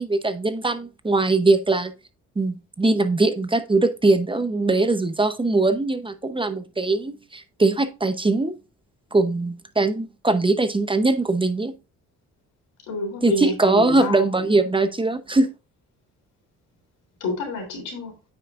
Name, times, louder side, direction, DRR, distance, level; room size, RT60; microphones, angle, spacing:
voice 1, 0.0-1.9 2.4-8.5 9.1-11.7 13.2-15.5, right 2 dB, 15° right, 10 dB, 0.8 m, -21 dB
voice 2, 12.9-14.3 17.2-18.1, left 2 dB, 90° left, 3 dB, 3.4 m, -28 dB
9.2 x 5.8 x 2.5 m, 0.30 s
cardioid pair, 90°, 30 cm